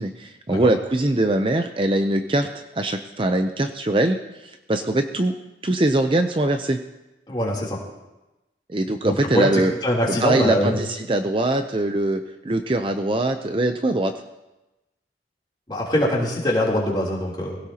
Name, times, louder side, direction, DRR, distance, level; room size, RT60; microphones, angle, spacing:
voice 1, 0.0-5.3 5.6-6.8 8.7-9.7 10.1-14.1, right 1 dB, 30° right, 6 dB, 0.6 m, -22 dB
voice 2, 7.3-7.8 9.0-9.5 9.8-10.8 15.7-17.6, left 1 dB, 25° left, -4 dB, 3.3 m, -23 dB
21.5 x 16.5 x 2.9 m, 1.0 s
head